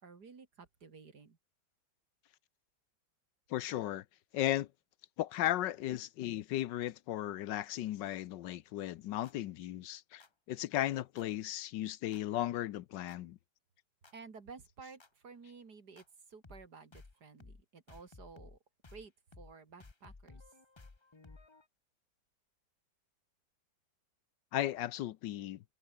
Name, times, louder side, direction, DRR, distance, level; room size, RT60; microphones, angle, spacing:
voice 1, 0.0-1.4 14.1-18.6 18.9-20.4, right 5 dB, 55° right, 2.9 m, -53 dB
voice 2, 3.5-4.0 4.3-4.7 5.2-13.4 24.5-25.6, left 13 dB, 70° left, 1.3 m, -36 dB
sound 1, 9.2-9.3 10.2-10.3 11.2-11.3 12.1-12.2 13.1-13.2 14.0-14.1 15.0-15.1 16.0-16.1 16.4-16.7 16.9-17.1 17.4-17.6 17.9-18.6 18.8-19.1 19.3-19.5 19.8-21.7, left 3 dB, 20° left, 0.8 m, -56 dB
omnidirectional pair, 2.1 m